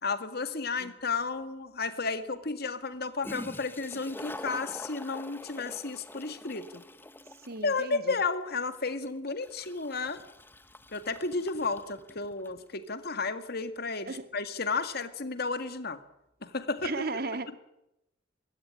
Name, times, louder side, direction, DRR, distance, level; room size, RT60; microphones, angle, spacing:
voice 1, 0.0-6.8 7.6-10.2 10.9-16.0 16.4-16.9, left 4 dB, 55° left, 10 dB, 1.9 m, -33 dB
Toilet flush, 1.2-1.3 2.9-3.0 3.2-12.6, left 1 dB, 10° left, 1.0 m, -45 dB
voice 2, 7.5-8.1 14.1-14.3 16.8-17.6, right 3 dB, 55° right, 11 dB, 1.7 m, -35 dB
23.0 x 16.5 x 10.0 m, 0.87 s
head